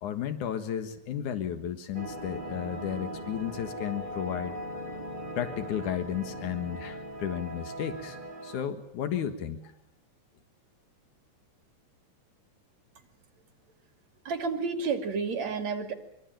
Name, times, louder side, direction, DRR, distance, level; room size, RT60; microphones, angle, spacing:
voice 1, 0.0-4.6 5.4-8.2 8.4-9.7, left 9 dB, 85° left, 8 dB, 3.1 m, -33 dB
sound 1, 1.9-8.6, equal, 15° right, 3.6 m, -39 dB
voice 2, 14.3-16.0, right 5 dB, 65° right, 6 dB, 3.8 m, -30 dB
25.0 x 23.5 x 9.1 m, 0.81 s
omnidirectional pair, 3.4 m